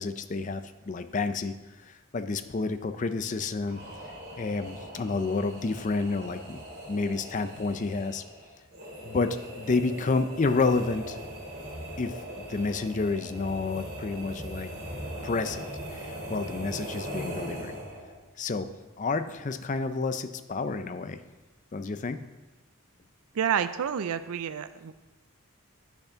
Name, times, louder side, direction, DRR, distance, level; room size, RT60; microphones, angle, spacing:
voice 1, 0.0-1.5 1.9-3.8 4.4-8.2 9.0-11.2 12.0-12.2 12.5-14.7 15.2-17.7 18.4-21.2 21.7-22.2, left 3 dB, 35° left, 10 dB, 0.4 m, -30 dB
sound 1, 3.6-18.2, right 1 dB, 45° right, 3.5 m, -40 dB
voice 2, 23.3-25.0, right 8 dB, 80° right, 13 dB, 0.4 m, -29 dB
8.2 x 7.1 x 5.6 m, 1.2 s
head